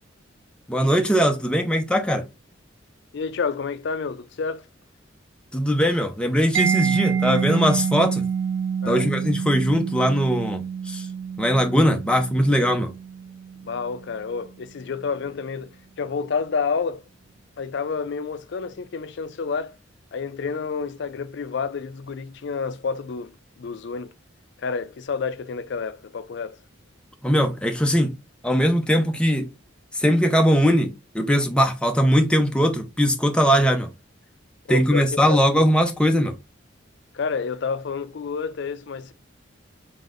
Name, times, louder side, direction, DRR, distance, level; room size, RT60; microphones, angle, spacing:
voice 1, 0.7-2.2 5.5-8.2 8.9-11.1 11.4-12.9 27.2-28.2 28.4-29.5 29.9-33.9 34.7-36.4, equal, 5° left, 0.6 m, -20 dB
voice 2, 3.1-4.7 8.8-9.1 13.6-17.0 17.6-19.8 20.1-24.1 24.6-26.6 34.7-35.7 37.1-39.1, left 5 dB, 60° left, 0.4 m, -29 dB
Mallet percussion, 6.5-14.1, right 7 dB, 70° right, 0.4 m, -27 dB
4.0 x 3.6 x 2.4 m
head